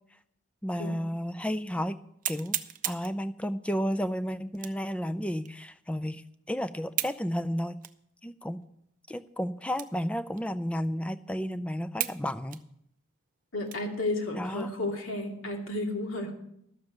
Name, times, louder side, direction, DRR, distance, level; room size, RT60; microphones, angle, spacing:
voice 1, 0.6-2.0 2.3-2.6 2.8-6.2 6.5-7.7 8.2-8.6 9.1-12.6 14.4-14.7, equal, 5° left, 12 dB, 0.4 m, -32 dB
sound 1, 0.9-1.0 1.5-1.6 2.2-3.2 4.5-4.9 5.5-5.6 6.9-7.2 7.8-8.0 8.6-8.7 9.7-10.1 10.4-10.5 11.1-11.2 12.0-12.2 12.5-14.0 14.5-14.7 15.1-15.6, right 13 dB, 40° right, 0.6 m, -35 dB
voice 2, 13.5-16.3, left 2 dB, 80° left, 1 dB, 2.7 m, -32 dB
12.5 x 7.1 x 7.8 m, 0.75 s
head